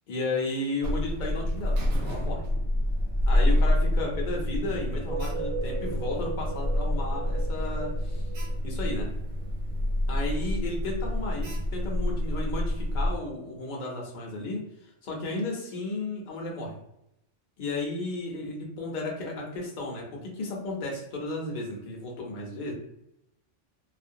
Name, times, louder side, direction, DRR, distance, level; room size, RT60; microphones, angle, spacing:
voice 1, 0.1-2.4 3.3-8.2 8.6-9.1 10.1-16.8 17.6-22.7, left 2 dB, 45° left, -1 dB, 0.7 m, -34 dB
Alarm, 0.8-13.2, left 1 dB, 75° right, 0.9 m, -28 dB
sound 1, 4.9-9.5, right 7 dB, 45° right, 0.7 m, -39 dB
2.4 x 2.0 x 2.6 m, 0.81 s
omnidirectional pair, 1.3 m